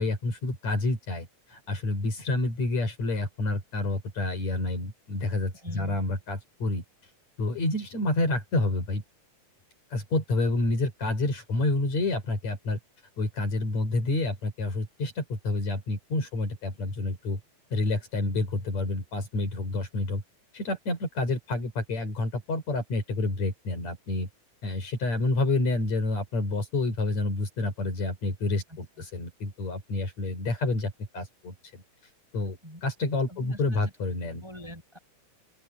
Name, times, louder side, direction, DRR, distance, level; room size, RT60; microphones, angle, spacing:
voice 1, 0.0-6.8 7.4-9.0 9.9-12.8 13.2-17.4 17.7-20.2 20.5-24.3 24.6-31.8 32.3-34.4, left 2 dB, 60° left, 6.4 m, -29 dB
voice 2, 5.6-6.0 28.7-28.8 32.6-32.8 33.3-33.9 34.4-35.0, equal, 10° right, 6.0 m, -43 dB
open air
omnidirectional pair, 3.6 m